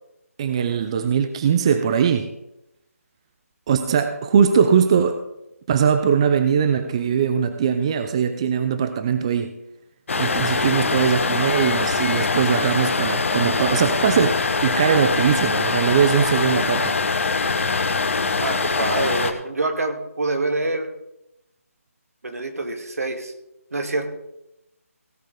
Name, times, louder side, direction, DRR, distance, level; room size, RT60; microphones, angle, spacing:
voice 1, 0.4-2.3 3.7-5.2 5.7-9.5 10.1-17.0, right 7 dB, 20° right, 9 dB, 0.5 m, -20 dB
sound 1, 10.1-19.3, left 4 dB, 55° left, 1.3 m, -23 dB
voice 2, 18.4-20.9 22.2-23.3 23.7-24.1, right 2 dB, 75° right, 6 dB, 2.1 m, -26 dB
17.0 x 8.6 x 3.8 m, 0.85 s
figure-of-eight pair, 165°, 8 cm